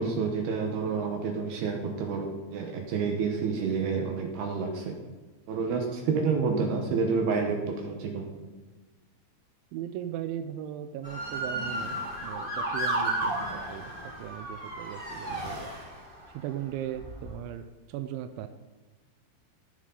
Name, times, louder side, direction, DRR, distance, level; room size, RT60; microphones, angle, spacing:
voice 1, 0.0-4.9 5.5-8.5, right 5 dB, 70° right, 2 dB, 2.9 m, -29 dB
voice 2, 9.7-13.9 14.2-15.7 16.3-18.5, right 11 dB, 90° right, 9 dB, 3.0 m, -38 dB
Motor vehicle (road) / Siren, 11.0-16.3 16.9-17.3, right 1 dB, 40° right, 0.7 m, -33 dB
17.0 x 6.3 x 4.0 m, 1.3 s
omnidirectional pair, 5.3 m